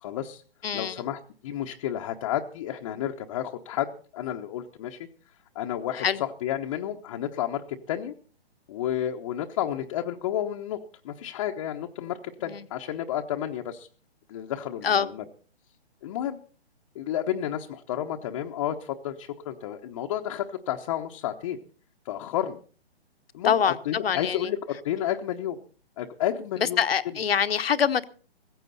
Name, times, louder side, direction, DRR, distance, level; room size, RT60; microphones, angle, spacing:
voice 1, 0.0-0.4 0.7-5.0 5.5-8.1 8.7-10.8 11.0-13.9 14.3-15.2 16.0-16.4 16.9-21.6 22.0-22.6 23.3-25.6 26.0-26.8, left 11 dB, 30° left, 1.0 m, -31 dB
voice 2, 0.6-0.9 6.0-6.2 12.4-12.6 14.8-15.1 23.4-24.5 26.6-28.0, left 7 dB, 65° left, 1.2 m, -25 dB
17.0 x 15.0 x 4.1 m
hypercardioid pair, 145°, 32 cm